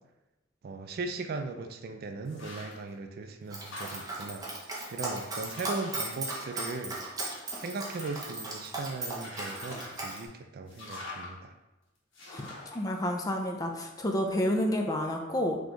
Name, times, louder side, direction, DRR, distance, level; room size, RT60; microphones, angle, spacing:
voice 1, 0.6-4.4 4.9-7.0 7.6-11.5, right 3 dB, 50° right, 6 dB, 0.3 m, -38 dB
sound 1, 2.3-2.9 3.3-4.4 5.0-5.1 5.4-7.1 7.5-8.4 9.1-10.0 10.7-11.3 12.1-12.8, left 2 dB, 75° left, 1.4 m, -45 dB
Dog, 3.5-10.2, right 2 dB, 20° right, 0.7 m, -37 dB
voice 2, 12.3-15.6, left 1 dB, 20° left, 2 dB, 0.4 m, -30 dB
3.9 x 3.0 x 3.8 m, 1.0 s
head